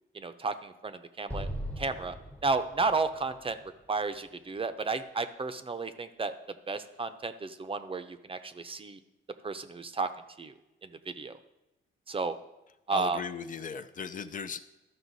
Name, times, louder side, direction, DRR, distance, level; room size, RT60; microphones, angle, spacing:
voice 1, 0.1-1.5 1.8-2.2 2.4-3.6 3.9-6.3 6.7-9.0 9.4-10.1 10.4-10.5 10.8-10.9 11.2-11.3 12.1-12.3 12.9-13.2, right 4 dB, 25° right, 10 dB, 0.7 m, -32 dB
Explosion, 1.3-4.6, equal, 5° left, 0.9 m, -40 dB
voice 2, 12.9-14.6, left 6 dB, 40° left, 10 dB, 0.6 m, -37 dB
13.0 x 5.5 x 4.1 m, 0.98 s
cardioid pair, 90°, 20 cm